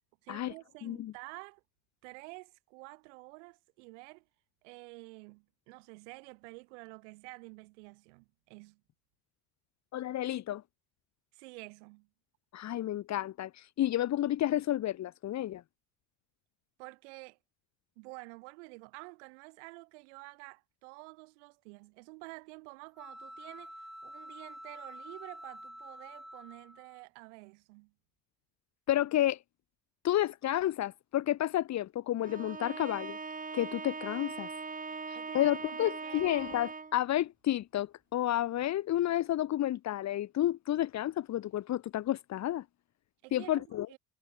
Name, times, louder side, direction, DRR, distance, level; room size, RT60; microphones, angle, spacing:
voice 1, 0.2-1.6 2.0-4.2 4.6-8.8 11.3-12.1 16.8-17.4 18.0-27.9 34.9-35.5 35.8-36.2 43.2-44.0, right 29 dB, 85° right, 7.6 m, -50 dB
voice 2, 0.8-1.1 9.9-10.6 12.5-15.6 28.9-29.4 30.0-33.2 33.5-34.5 35.1-42.6 43.3-43.9, left 13 dB, 50° left, 1.7 m, -31 dB
sound 1, 22.9-27.0, equal, ahead, 7.4 m, -48 dB
Bowed string instrument, 32.2-37.1, right 4 dB, 25° right, 7.4 m, -41 dB
supercardioid pair, 85°, 34 cm